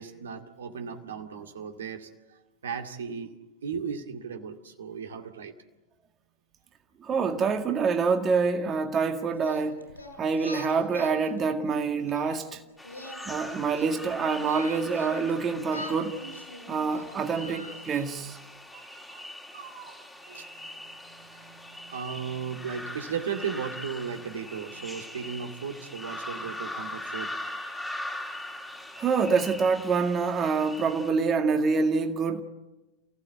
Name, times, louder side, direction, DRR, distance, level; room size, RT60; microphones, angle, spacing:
voice 1, 0.0-3.3 3.6-5.5 18.7-18.8 19.1-19.3 19.5-20.0 20.3-27.6, right 6 dB, 65° right, 2.2 m, -37 dB
voice 2, 7.0-9.9 10.2-12.6 13.3-16.2 16.7-18.4 26.7-26.8 29.0-32.4, right 5 dB, 25° right, 1.9 m, -26 dB
Singing, 9.4-12.4 12.8-15.3 15.7-18.3, left 1 dB, 85° left, 7.1 m, -43 dB
sound 1, 12.8-31.1, left 1 dB, 5° left, 2.6 m, -41 dB
29.5 x 16.5 x 9.3 m
figure-of-eight pair, 90°, 0 cm